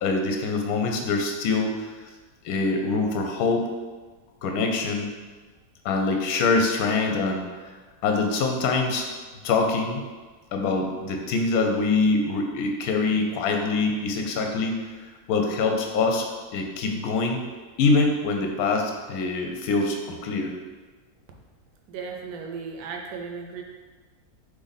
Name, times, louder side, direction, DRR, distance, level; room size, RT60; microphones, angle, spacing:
voice 1, 0.0-1.9 2.4-3.7 4.4-5.1 5.8-7.4 8.0-9.1 9.4-10.0 10.5-14.8 15.3-16.3 16.5-17.4 17.8-20.5, left 3 dB, 70° left, 2 dB, 1.0 m, -24 dB
voice 2, 21.9-23.6, right 5 dB, 70° right, 2 dB, 1.0 m, -35 dB
3.9 x 3.1 x 4.0 m, 1.3 s
omnidirectional pair, 1.7 m